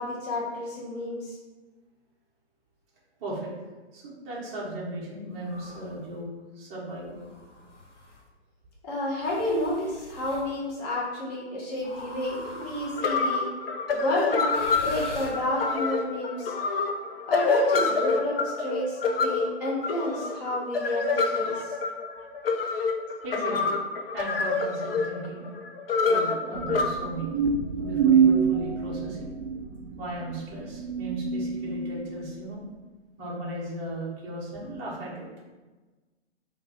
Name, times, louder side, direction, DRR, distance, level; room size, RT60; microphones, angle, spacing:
voice 1, 0.0-1.4 8.8-13.5 13.9-14.5 14.8-16.5 17.3-21.7, left 1 dB, 35° left, -4 dB, 0.8 m, -30 dB
voice 2, 3.2-3.5 3.9-7.2 23.2-23.8 24.1-25.4 26.1-27.3 27.8-29.3 30.0-32.6 33.2-35.3, right 1 dB, 15° right, -7 dB, 0.5 m, -36 dB
sound 1, 5.4-6.1 7.0-8.2 9.2-10.5 11.8-13.3 14.4-15.8, left 1 dB, 85° left, 0.8 m, -43 dB
sound 2, 12.6-12.7 13.0-26.9, left 4 dB, 55° left, 0.4 m, -27 dB
sound 3, 26.5-32.3, right 6 dB, 70° right, 0.5 m, -26 dB
3.8 x 2.3 x 2.8 m, 1.2 s
hypercardioid pair, 135°, 35 cm